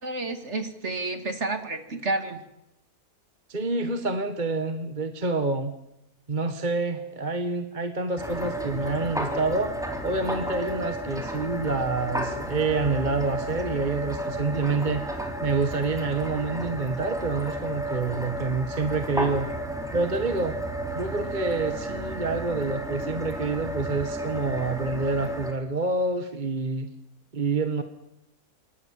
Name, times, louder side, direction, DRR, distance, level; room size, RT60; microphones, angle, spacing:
voice 1, 0.0-2.4, right 2 dB, 50° right, 8 dB, 2.7 m, -30 dB
voice 2, 3.5-5.7 6.3-9.7 10.0-15.1 15.4-19.5 19.9-20.6 20.9-26.9 27.3-27.8, right 3 dB, 30° right, 8 dB, 1.6 m, -27 dB
sound 1, 8.2-25.5, right 1 dB, ahead, 3.5 m, -32 dB
27.5 x 23.0 x 7.6 m, 0.87 s
omnidirectional pair, 1.6 m